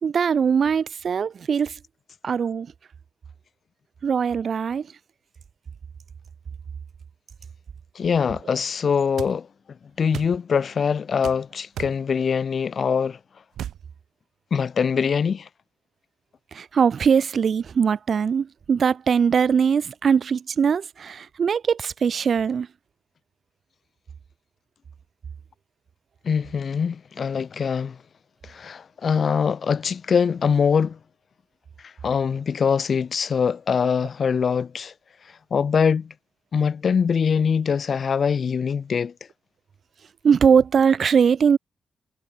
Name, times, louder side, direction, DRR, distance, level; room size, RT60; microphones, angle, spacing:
voice 1, 0.0-1.8 2.2-2.7 4.0-4.9 16.5-22.7 40.2-41.6, right 6 dB, 60° right, 2.6 m, -21 dB
voice 2, 7.9-9.5 10.0-13.2 14.5-15.5 26.2-28.0 28.4-31.0 31.8-34.9 35.2-36.1 36.5-39.1, left 6 dB, 55° left, 1.0 m, -23 dB
sound 1, 9.2-9.4 10.1-10.4 11.2-11.4 11.8-12.0 13.6-13.8, right 10 dB, 85° right, 5.0 m, -33 dB
cardioid pair, 75°, 0 cm